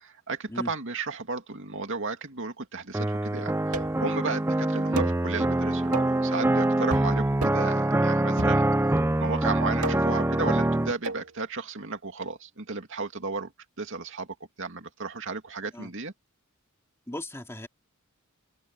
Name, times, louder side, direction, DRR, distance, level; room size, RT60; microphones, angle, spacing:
voice 1, 0.0-8.7 9.2-13.5 13.8-14.3 14.6-16.1, right 4 dB, 60° right, 2.5 m, -34 dB
sound 1, 2.9-10.9, right 1 dB, 10° right, 0.5 m, -25 dB
sound 2, 3.7-4.1 5.0-5.2 5.9-6.2 6.9-7.1 7.4-7.7 8.4-9.0 9.8-10.2 11.0-11.3, right 2 dB, 90° right, 2.3 m, -33 dB
voice 2, 17.1-17.7, left 1 dB, 10° left, 2.5 m, -37 dB
open air
head